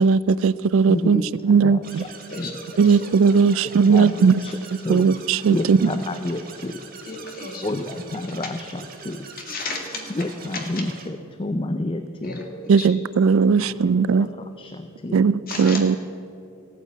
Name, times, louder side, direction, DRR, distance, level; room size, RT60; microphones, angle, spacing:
voice 1, 0.0-2.0 2.8-4.4 4.9-5.9 12.7-14.3 15.1-16.0, right 5 dB, 60° right, 19 dB, 0.3 m, -18 dB
voice 2, 0.9-1.2 1.6-2.5 3.9-4.1 4.4-4.6 4.8-5.1 5.5-6.8 7.6-9.3 10.1-12.4 13.6-13.7 14.4-15.2, left 2 dB, 25° left, 8 dB, 0.5 m, -29 dB
sound 1, 1.8-11.1, right 4 dB, 40° right, 1.4 m, -42 dB
voice 3, 7.1-7.6 9.5-10.0 12.2-12.9 15.5-15.8, left 3 dB, 40° left, 1 dB, 2.2 m, -33 dB
15.0 x 9.4 x 8.2 m, 2.6 s
head